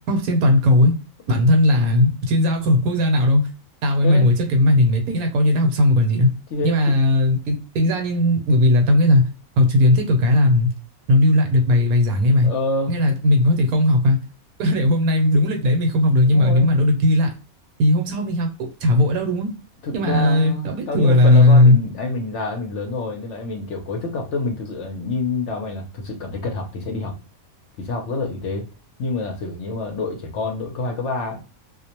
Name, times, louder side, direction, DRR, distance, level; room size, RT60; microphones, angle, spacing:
voice 1, 0.1-0.9 1.3-3.5 3.8-6.3 6.6-9.2 9.6-10.7 11.1-12.5 12.9-14.2 14.6-17.3 17.8-19.5 19.9-21.8, left 1 dB, 75° right, 4 dB, 1.1 m, -17 dB
voice 2, 12.4-12.9 16.2-16.7 19.8-27.1 27.8-28.6 29.0-31.4, left 3 dB, 60° left, 2 dB, 0.8 m, -27 dB
2.5 x 2.1 x 2.9 m, 0.34 s
omnidirectional pair, 1.6 m